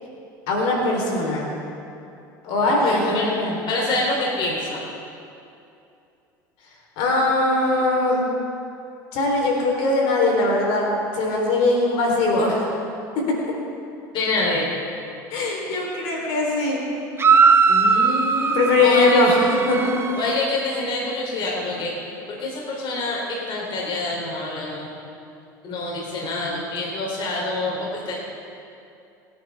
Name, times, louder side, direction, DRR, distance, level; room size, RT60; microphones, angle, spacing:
voice 1, 0.5-1.5 2.4-3.5 7.0-8.2 9.1-12.7 13.2-13.4 15.3-16.8 18.5-19.4 19.7-19.9, left 2 dB, 65° left, -1 dB, 3.6 m, -20 dB
voice 2, 2.7-3.3 3.7-4.8 14.1-14.7 17.7-19.2 20.2-24.9 25.6-28.1, left 2 dB, 50° left, -2 dB, 3.3 m, -26 dB
sound 1, 17.2-20.4, right 5 dB, 25° right, 1.2 m, -19 dB
29.0 x 9.8 x 3.5 m, 2.7 s
hypercardioid pair, 80°, 11 cm